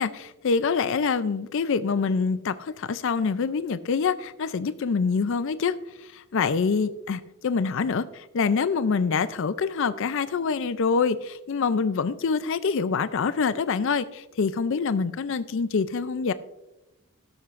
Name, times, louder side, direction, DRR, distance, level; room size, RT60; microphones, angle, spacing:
voice 1, 0.0-16.3, left 5 dB, 55° left, 14 dB, 0.4 m, -26 dB
14.0 x 12.5 x 2.5 m, 0.95 s
head